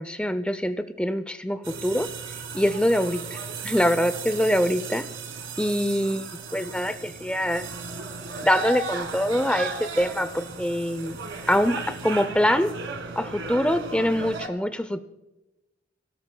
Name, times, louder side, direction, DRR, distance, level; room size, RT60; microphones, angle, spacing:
voice 1, 0.0-2.1 2.5-3.4 3.6-5.1 5.6-7.7 8.4-11.2 11.5-12.7 13.2-15.0, equal, 5° left, 11 dB, 0.5 m, -24 dB
sound 1, 1.6-14.5, right 4 dB, 80° right, 1.5 m, -35 dB
25.0 x 17.0 x 2.3 m, 1.0 s
head